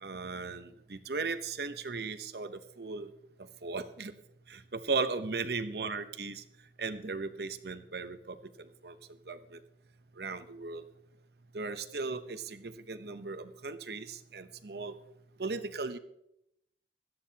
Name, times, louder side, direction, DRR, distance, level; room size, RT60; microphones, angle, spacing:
voice 1, 0.0-3.1 3.6-4.1 4.5-6.4 6.8-8.4 8.8-8.9 9.3-9.6 10.2-10.8 11.5-14.9 15.4-16.0, right 4 dB, 65° right, 10 dB, 0.9 m, -37 dB
17.5 x 13.0 x 2.9 m, 0.78 s
head